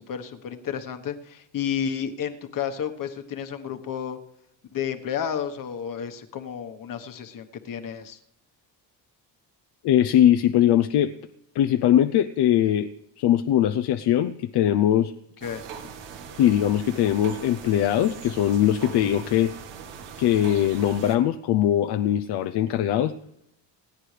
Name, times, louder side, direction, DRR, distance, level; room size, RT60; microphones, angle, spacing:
voice 1, 0.0-4.2 4.7-8.2 15.4-15.6, left 8 dB, 50° left, 7 dB, 1.3 m, -31 dB
voice 2, 9.8-11.1 11.5-12.9 13.2-15.1 16.4-19.6 20.2-23.1, left 11 dB, 70° left, 9 dB, 0.7 m, -21 dB
sound 1, 15.4-21.2, right 6 dB, 85° right, 1.7 m, -40 dB
28.0 x 9.6 x 3.4 m, 0.81 s
cardioid pair, 120°, 42 cm